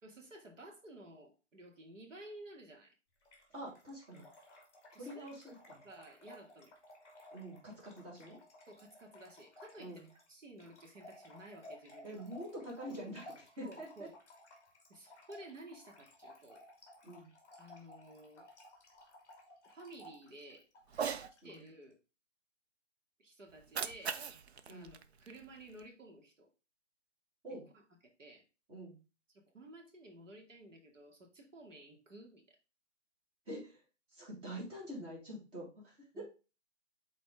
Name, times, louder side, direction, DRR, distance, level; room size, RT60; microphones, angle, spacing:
voice 1, 0.0-2.9 4.9-5.5 5.8-6.7 8.7-12.2 13.6-14.1 14.9-16.6 17.6-18.5 19.6-20.7 21.4-21.9 23.2-24.2 24.7-26.5 28.2-28.4 29.3-32.6 36.1-36.2, right 1 dB, 85° right, 1 dB, 2.5 m, -54 dB
Trickle dribble / Fill (with liquid), 3.2-21.7, left 1 dB, 5° left, 2.0 m, -57 dB
voice 2, 3.5-4.3 5.0-5.8 7.3-8.4 9.8-10.1 12.0-14.1 17.0-17.3 21.4-21.6 24.7-25.0 27.4-27.7 28.7-29.0 33.5-33.8 34.1-36.2, right 1 dB, 15° right, -4 dB, 2.3 m, -46 dB
Cat, 20.9-21.3 23.5-25.9, right 7 dB, 60° right, 0.7 m, -41 dB
8.0 x 4.2 x 3.7 m, 0.31 s
hypercardioid pair, 155°, 37 cm